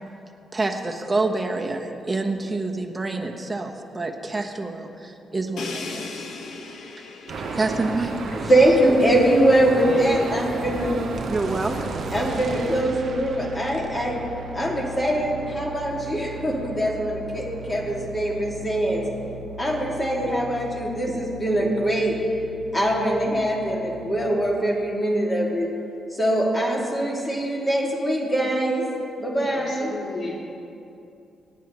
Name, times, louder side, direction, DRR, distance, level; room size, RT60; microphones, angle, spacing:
voice 1, 0.5-6.2 7.5-8.1 8.4-8.5 11.3-11.9, right 3 dB, 15° right, 2 dB, 1.1 m, -27 dB
Crash cymbal, 5.6-9.4, left 4 dB, 75° left, 1.2 m, -38 dB
sound 1, 7.3-12.8, right 3 dB, 75° right, 2.1 m, -31 dB
voice 2, 8.5-11.0 12.1-14.2 14.5-19.0 19.6-22.2 22.7-25.7 26.1-28.9 29.2-29.9, right 1 dB, 15° left, -2 dB, 2.3 m, -22 dB
voice 3, 9.8-10.4 29.4-30.4, left 2 dB, 55° left, -3 dB, 2.9 m, -36 dB
sound 2, 11.2-24.5, right 3 dB, 50° right, 1.0 m, -39 dB
26.5 x 10.0 x 3.1 m, 2.7 s
cardioid pair, 140°, 0 cm